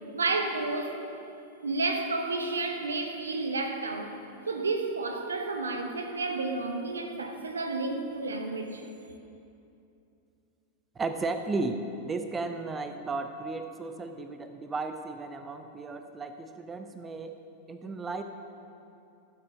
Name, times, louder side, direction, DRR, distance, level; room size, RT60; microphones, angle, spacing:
voice 1, 0.1-1.0 1.6-4.2 4.5-8.8, right 3 dB, 75° right, 1.0 m, -31 dB
voice 2, 11.0-17.4 17.7-18.2, right 3 dB, 20° right, 0.6 m, -34 dB
15.5 x 7.8 x 5.2 m
figure-of-eight pair, 90°, 0 cm